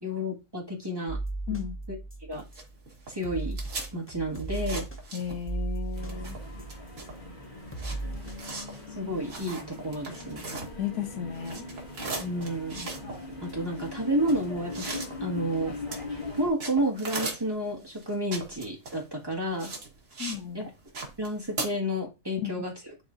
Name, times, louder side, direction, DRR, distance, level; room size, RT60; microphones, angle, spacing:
voice 1, 0.0-1.2 2.2-2.4 3.1-3.6 3.9-4.9 8.9-10.5 12.2-12.9 13.4-14.9 15.2-15.8 16.4-19.7 20.5-20.7 21.2-22.7, equal, 15° right, 1.7 m, -31 dB
sound 1, 1.1-2.7 3.2-7.2 7.7-8.6, right 2 dB, 15° left, 0.4 m, -36 dB
sound 2, 2.3-5.6 5.9-11.1 11.3-20.4 20.7-21.7, right 3 dB, 50° right, 2.0 m, -39 dB
voice 2, 5.1-6.4 10.8-11.6 20.2-20.6 22.4-22.5, left 9 dB, 80° left, 1.4 m, -34 dB
sound 3, 5.9-16.5, left 3 dB, 30° left, 2.2 m, -40 dB
10.5 x 4.1 x 2.6 m
omnidirectional pair, 1.7 m